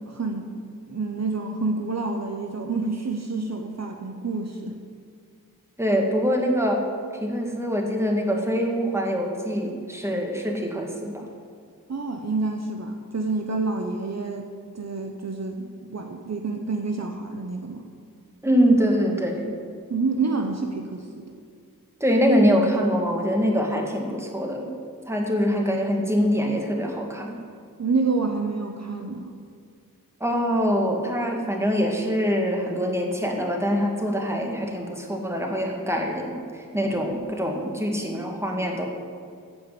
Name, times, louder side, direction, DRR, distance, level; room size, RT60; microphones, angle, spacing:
voice 1, 0.1-0.6 0.9-4.8 11.9-14.5 14.7-17.8 19.9-21.3 27.8-29.3, right 3 dB, 50° right, 4 dB, 0.9 m, -28 dB
voice 2, 5.8-6.9 7.2-11.3 18.4-19.5 22.0-24.7 25.1-27.4 30.2-38.9, equal, 10° right, 1 dB, 1.9 m, -24 dB
14.5 x 5.1 x 8.4 m, 2.2 s
wide cardioid pair, 85°, 35 cm